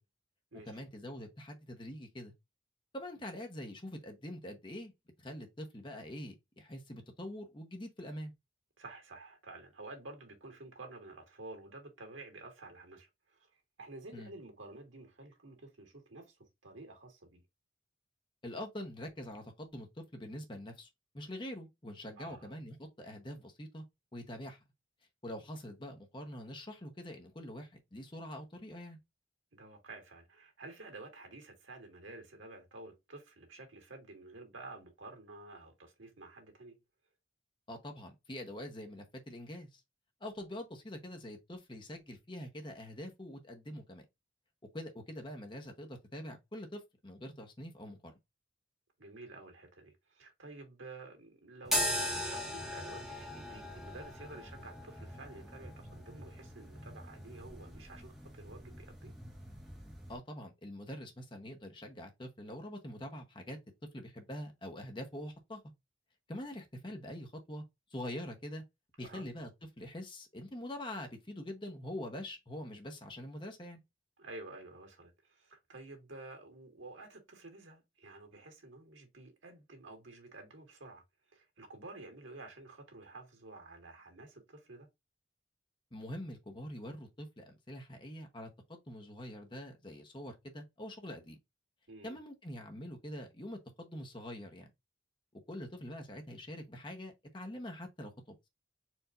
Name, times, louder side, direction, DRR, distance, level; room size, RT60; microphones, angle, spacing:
voice 1, 0.7-2.3 2.9-4.9 5.2-8.3 14.1-14.3 18.4-20.9 21.1-23.8 24.1-24.6 25.2-29.0 37.7-39.8 40.2-44.0 44.7-48.1 60.1-63.6 63.9-65.6 66.3-67.6 67.9-68.6 69.0-69.5 69.8-73.8 85.9-91.4 92.0-94.7 95.5-98.3, left 1 dB, 25° left, 0.9 m, -44 dB
voice 2, 8.8-13.4 13.8-17.4 22.2-22.5 29.5-36.8 49.0-59.1 69.0-69.3 74.2-81.0 81.3-84.9 91.9-92.2, right 2 dB, 85° right, 1.9 m, -51 dB
sound 1, 51.6-60.2, equal, ahead, 1.3 m, -40 dB
4.5 x 2.7 x 3.8 m
head